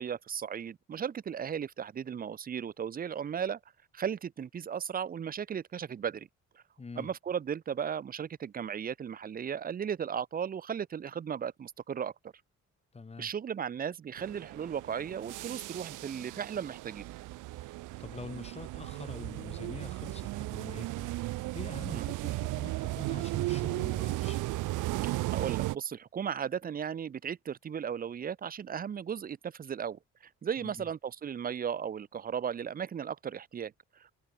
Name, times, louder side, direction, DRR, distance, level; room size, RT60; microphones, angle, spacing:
voice 1, 0.0-3.6 3.9-6.3 7.0-12.3 13.2-17.1 21.9-22.1 25.0-30.0 30.4-34.1, right 8 dB, 30° right, 0.5 m, -36 dB
voice 2, 6.8-7.1 12.9-13.3 17.6-24.4 30.6-30.9, left 4 dB, 20° left, 1.0 m, -46 dB
sound 1, 14.2-25.8, right 18 dB, 85° right, 0.7 m, -35 dB
cardioid pair, 90°, 30 cm